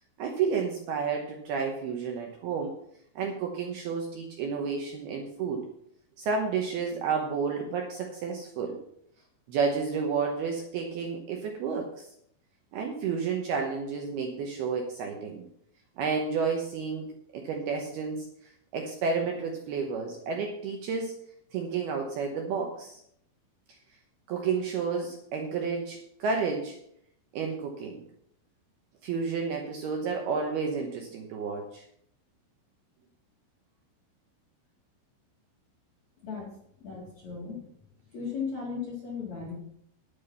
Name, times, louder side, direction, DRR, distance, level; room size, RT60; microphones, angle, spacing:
voice 1, 0.2-2.7 3.2-5.6 6.2-8.8 9.5-12.1 12.7-15.5 16.0-21.2 21.5-23.0 24.3-26.8 27.3-28.0 29.0-31.8, right 5 dB, 75° right, 2 dB, 2.4 m, -31 dB
voice 2, 36.2-36.5 36.8-37.6 38.1-39.5, left 5 dB, 45° left, -3 dB, 2.8 m, -36 dB
11.0 x 8.9 x 5.6 m, 0.71 s
omnidirectional pair, 5.8 m